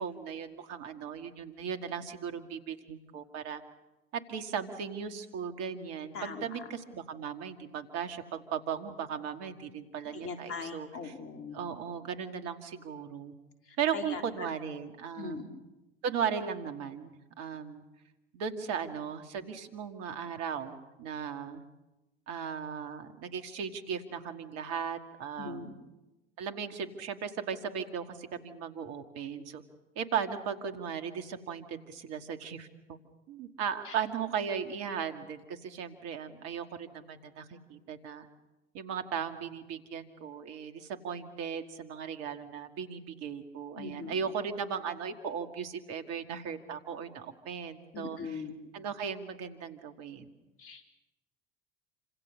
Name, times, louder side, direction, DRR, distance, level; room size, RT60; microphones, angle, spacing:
voice 1, 0.0-3.6 4.1-11.1 11.5-13.3 13.8-15.5 16.0-17.8 18.3-21.6 22.3-25.8 26.4-29.6 30.0-33.0 33.3-38.3 38.7-48.4 48.7-50.3, right 7 dB, 55° right, 7 dB, 2.5 m, -37 dB
voice 2, 10.2-11.6 13.9-14.2 15.2-15.4 25.4-25.7 33.9-34.0 43.8-44.1 47.9-48.6 50.6-50.9, left 5 dB, 50° left, 4 dB, 4.3 m, -40 dB
29.0 x 26.0 x 6.6 m, 1.0 s
figure-of-eight pair, 65°, 30 cm